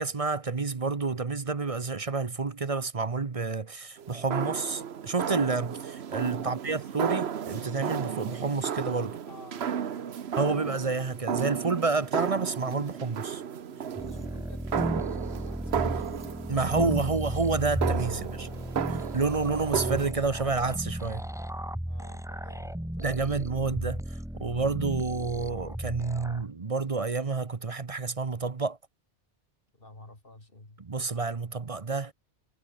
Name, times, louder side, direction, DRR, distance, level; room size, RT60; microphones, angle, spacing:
voice 1, 0.0-9.2 10.4-13.4 16.5-18.5 19.1-21.2 23.0-28.8 30.8-32.1, right 4 dB, 35° right, 0.9 m, -29 dB
sound 1, 4.0-20.1, right 8 dB, 70° right, 1.2 m, -34 dB
voice 2, 6.4-6.9 9.2-10.2 13.7-16.2 18.1-19.7 21.8-23.1 29.7-30.8, left 2 dB, 55° left, 4.3 m, -53 dB
sound 2, 14.0-26.4, equal, 5° right, 0.9 m, -34 dB
omnidirectional pair, 1.1 m